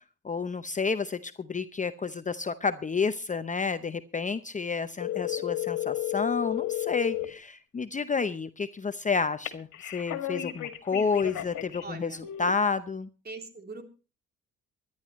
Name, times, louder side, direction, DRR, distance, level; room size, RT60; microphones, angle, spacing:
voice 1, 0.2-13.1, left 5 dB, 25° left, 11 dB, 0.7 m, -30 dB
sound 1, 5.0-7.3 9.4-11.8 12.2-12.5, left 14 dB, 75° left, 2.0 m, -32 dB
voice 2, 11.8-12.2 13.2-13.8, right 3 dB, 30° right, 5 dB, 3.0 m, -41 dB
23.5 x 11.0 x 3.1 m, 0.32 s
cardioid pair, 90°, 30 cm